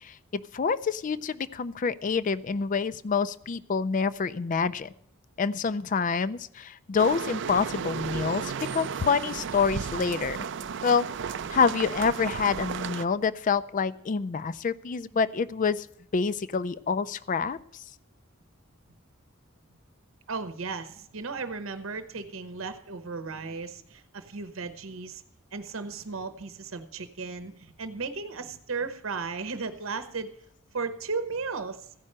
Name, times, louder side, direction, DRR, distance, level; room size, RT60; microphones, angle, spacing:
voice 1, 0.0-4.9 5.4-10.4 10.8-11.1 11.5-15.9 16.1-17.6, left 5 dB, 40° left, 17 dB, 0.4 m, -27 dB
sound 1, 7.0-13.1, right 6 dB, 60° right, 0.4 m, -34 dB
voice 2, 20.3-25.2 25.5-30.4 30.7-31.9, right 4 dB, 80° right, 10 dB, 0.8 m, -35 dB
15.0 x 5.5 x 8.7 m, 0.72 s
head